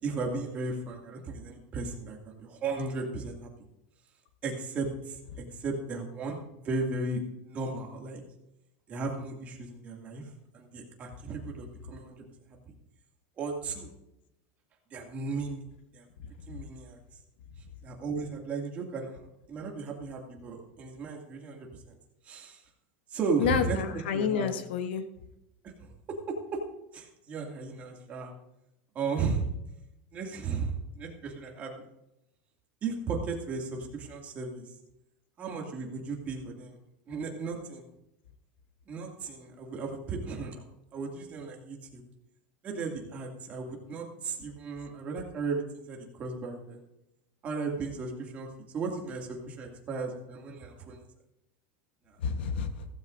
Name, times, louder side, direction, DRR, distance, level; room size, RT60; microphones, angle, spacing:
voice 1, 0.0-3.5 4.4-5.2 5.6-8.2 8.9-10.2 10.5-12.2 13.4-13.9 14.9-15.6 15.9-16.1 16.5-17.0 17.8-21.9 22.2-22.6 23.1-23.8 24.1-24.5 25.8-26.2 26.5-26.6 26.9-28.3 28.9-29.5 30.1-31.9 32.8-34.7 35.4-36.8 37.1-37.9 38.9-40.6 40.9-42.0 42.6-46.8 47.4-48.5 48.7-51.0 52.1-52.2, right 4 dB, 25° right, 0 dB, 2.3 m, -35 dB
voice 2, 23.4-25.0 52.2-52.9, left 7 dB, 90° left, 8 dB, 1.2 m, -29 dB
16.5 x 14.5 x 2.6 m, 0.88 s
supercardioid pair, 160°, 6 cm